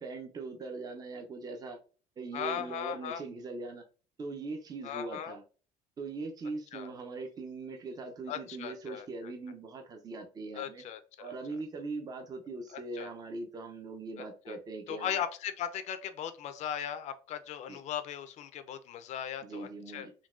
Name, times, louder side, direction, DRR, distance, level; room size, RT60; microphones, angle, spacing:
voice 1, 0.0-1.8 2.2-3.8 4.2-5.4 6.0-10.8 11.2-15.2 17.7-17.8 19.4-20.1, right 3 dB, 25° right, 0.5 m, -41 dB
voice 2, 2.3-3.2 4.8-5.4 6.7-6.9 8.3-9.3 10.5-11.4 12.7-13.1 14.5-14.6 14.9-20.1, left 9 dB, 55° left, 0.5 m, -38 dB
3.8 x 2.2 x 2.4 m
cardioid pair, 110°, 14 cm